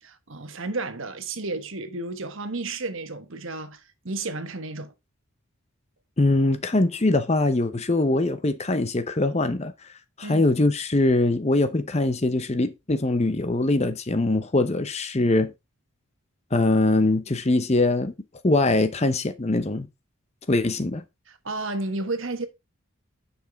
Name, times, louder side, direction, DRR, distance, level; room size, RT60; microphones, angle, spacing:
voice 1, 0.0-4.9 10.2-10.4 21.3-22.5, right 3 dB, 60° right, 1.3 m, -32 dB
voice 2, 6.2-9.7 10.2-15.5 16.5-18.1 18.4-19.9 20.5-21.0, left 2 dB, 30° left, 0.7 m, -22 dB
10.0 x 5.8 x 3.5 m
head